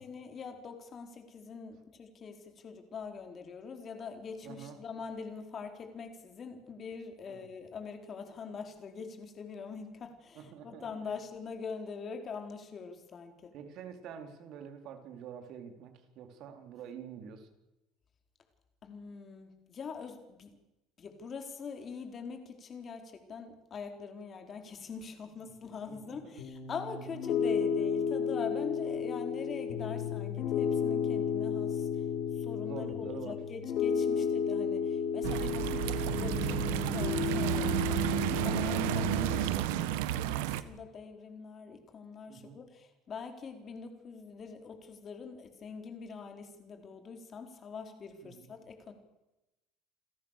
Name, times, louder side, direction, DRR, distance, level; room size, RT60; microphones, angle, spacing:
voice 1, 0.0-13.5 18.8-20.6 21.0-32.0 32.4-48.9, left 5 dB, 40° left, 5 dB, 4.3 m, -43 dB
voice 2, 4.4-4.8 7.3-7.4 10.3-11.2 13.5-17.5 25.4-25.5 25.9-26.4 27.0-27.1 32.6-33.4 34.1-34.3 42.3-42.6 48.2-48.5, right 8 dB, 60° right, 6 dB, 4.2 m, -47 dB
Piano, 26.4-39.5, left 7 dB, 65° left, 5.2 m, -33 dB
sound 1, 35.2-40.6, right 12 dB, 85° right, 1.2 m, -31 dB
29.5 x 13.5 x 6.8 m, 0.97 s
supercardioid pair, 105°, 0 cm